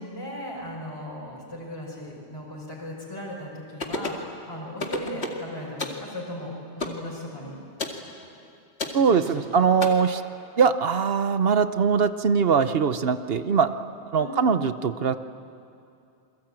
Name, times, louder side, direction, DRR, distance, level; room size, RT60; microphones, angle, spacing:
voice 1, 0.0-7.6 9.0-9.7 14.2-14.5, left 1 dB, 20° left, -5 dB, 5.3 m, -37 dB
sound 1, 3.8-4.3 4.8-5.4 5.8-6.0 6.8-7.0 7.8-8.0 8.8-9.0 9.8-9.9, left 2 dB, 70° left, 2.5 m, -30 dB
voice 2, 8.9-10.2 10.6-13.7 14.1-15.2, right 6 dB, 65° right, 11 dB, 1.0 m, -22 dB
28.0 x 22.0 x 8.9 m, 2.6 s
omnidirectional pair, 1.1 m